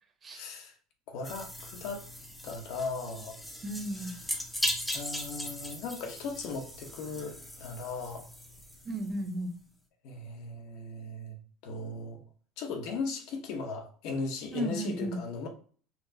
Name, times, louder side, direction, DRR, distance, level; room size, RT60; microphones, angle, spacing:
voice 1, 0.3-0.7 1.1-2.0 2.4-3.4 4.0-4.2 4.9-8.2 10.0-11.4 11.6-12.2 12.6-15.5, left 3 dB, 65° left, 1.0 m, -37 dB
sound 1, 1.2-9.4, equal, 5° left, 0.6 m, -39 dB
voice 2, 3.6-4.1 8.8-9.5 14.5-15.2, equal, 25° right, 0.8 m, -34 dB
5.6 x 2.1 x 2.7 m
cardioid pair, 140°, 0 cm